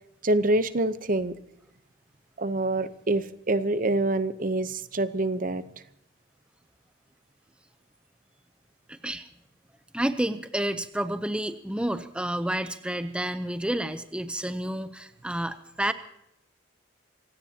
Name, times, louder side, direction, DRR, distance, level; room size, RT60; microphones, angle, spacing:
voice 1, 0.2-1.3 2.4-5.6, right 2 dB, 45° right, 13 dB, 0.8 m, -26 dB
voice 2, 8.9-9.2 9.9-15.9, right 1 dB, 5° right, 10 dB, 0.6 m, -30 dB
26.0 x 17.0 x 2.9 m, 0.79 s
head